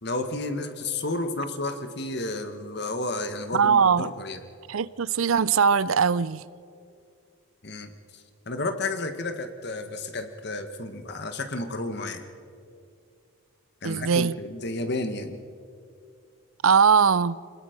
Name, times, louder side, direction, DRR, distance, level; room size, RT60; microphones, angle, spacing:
voice 1, 0.0-4.4 7.6-12.2 13.8-15.4, left 2 dB, 50° left, 1.4 m, -32 dB
voice 2, 3.5-4.1 4.7-6.4 13.8-14.3 16.6-17.4, right 6 dB, 75° right, 0.5 m, -21 dB
26.5 x 20.5 x 5.2 m
head